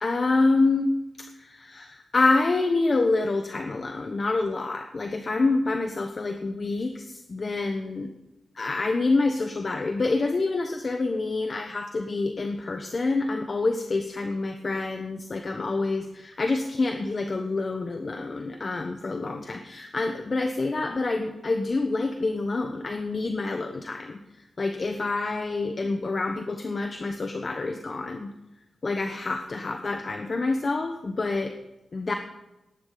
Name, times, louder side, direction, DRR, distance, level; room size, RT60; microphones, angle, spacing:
voice 1, 0.0-0.9 1.4-8.1 8.6-24.2 24.6-28.3 28.8-31.5 31.9-32.1, left 3 dB, 45° left, 6 dB, 1.0 m, -27 dB
18.5 x 10.5 x 3.9 m, 0.97 s
cardioid pair, 75°, 0 cm